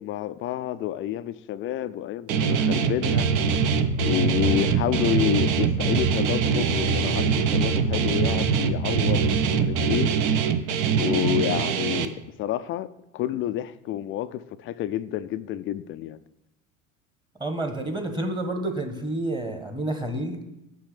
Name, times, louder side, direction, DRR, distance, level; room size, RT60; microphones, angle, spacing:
voice 1, 0.0-3.3 4.0-10.2 10.9-12.1 12.4-16.2, left 12 dB, 35° left, 0.4 m, -29 dB
Guitar, 2.3-12.1, right 7 dB, 55° right, 0.7 m, -24 dB
sound 1, 3.0-9.9, right 2 dB, 75° right, 1.4 m, -28 dB
voice 2, 17.4-20.5, right 1 dB, 10° right, 1.2 m, -29 dB
6.2 x 4.8 x 6.7 m
hypercardioid pair, 80°, 40 cm